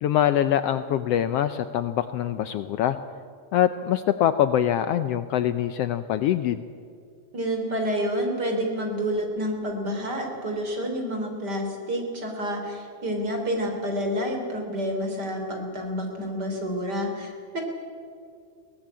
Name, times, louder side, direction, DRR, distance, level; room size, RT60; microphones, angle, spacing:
voice 1, 0.0-3.0 3.5-6.6, left 11 dB, 75° left, 11 dB, 1.5 m, -24 dB
voice 2, 7.3-17.6, equal, 35° right, 3 dB, 3.9 m, -29 dB
22.5 x 17.5 x 8.7 m, 2.3 s
omnidirectional pair, 3.3 m